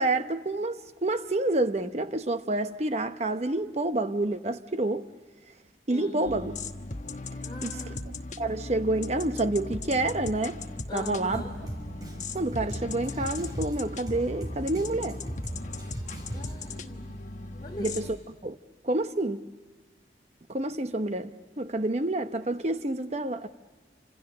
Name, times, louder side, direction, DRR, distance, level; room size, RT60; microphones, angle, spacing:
voice 1, 0.0-5.1 5.9-6.5 7.6-7.8 8.4-10.6 10.9-11.4 12.3-15.2 17.8-18.1 18.4-18.6 18.8-19.4 20.5-21.3 21.6-23.5, right 2 dB, 35° right, 0.8 m, -28 dB
voice 2, 5.9-6.4 7.4-8.1 10.9-11.5 16.3-17.1 17.6-18.1, equal, 25° left, 2.9 m, -41 dB
sound 1, 6.3-18.1, left 3 dB, 40° left, 1.2 m, -38 dB
Drum kit, 11.3-16.8, right 1 dB, 20° right, 6.0 m, -39 dB
29.5 x 27.0 x 6.6 m
head